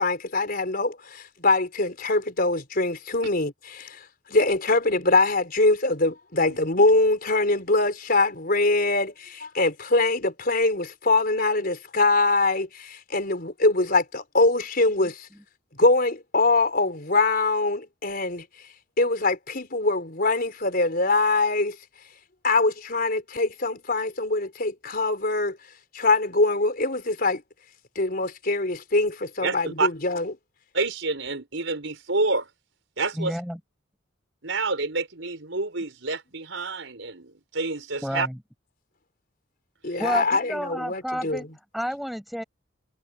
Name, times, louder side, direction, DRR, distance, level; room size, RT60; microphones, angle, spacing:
voice 1, 0.0-4.0 4.3-15.3 15.8-18.4 19.0-21.8 22.4-25.6 25.9-27.4 27.9-30.3 39.8-41.5, left 2 dB, 50° left, 4.4 m, -23 dB
voice 2, 29.4-29.9 30.7-32.5 33.0-33.4 34.4-38.3, right 3 dB, 75° right, 5.1 m, -28 dB
voice 3, 33.2-33.6 38.0-38.4 40.0-41.5 41.7-42.4, equal, ahead, 7.4 m, -30 dB
head